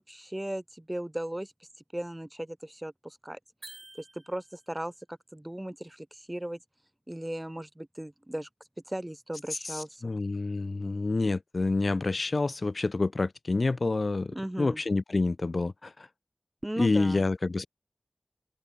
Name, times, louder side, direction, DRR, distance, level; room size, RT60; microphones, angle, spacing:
voice 1, 0.0-1.5 1.9-3.4 3.9-6.6 7.1-8.5 8.9-10.0 14.3-14.8 16.6-17.2, right 1 dB, 15° right, 1.9 m, -37 dB
sound 1, 3.6-4.8, right 2 dB, 45° right, 2.5 m, -49 dB
voice 2, 9.7-16.1 16.8-17.7, left 3 dB, 70° left, 1.6 m, -28 dB
open air
wide cardioid pair, 60°, 0 cm